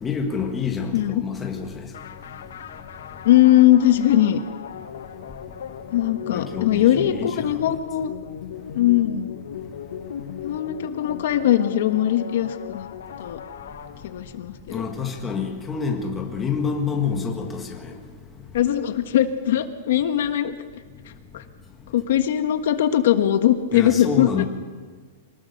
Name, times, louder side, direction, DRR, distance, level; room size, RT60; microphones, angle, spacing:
voice 1, 0.0-1.8 6.3-7.4 14.7-17.9 23.7-24.4, left 6 dB, 10° left, 1.7 m, -27 dB
sound 1, 1.9-14.5, left 8 dB, 75° left, 1.6 m, -38 dB
voice 2, 3.2-4.4 5.9-8.1 8.7-9.3 10.4-12.9 13.2-13.4 14.0-14.8 18.5-20.5 21.3-21.4 21.9-24.4, left 12 dB, 55° left, 1.4 m, -20 dB
25.0 x 19.5 x 6.7 m
supercardioid pair, 175°, 0 cm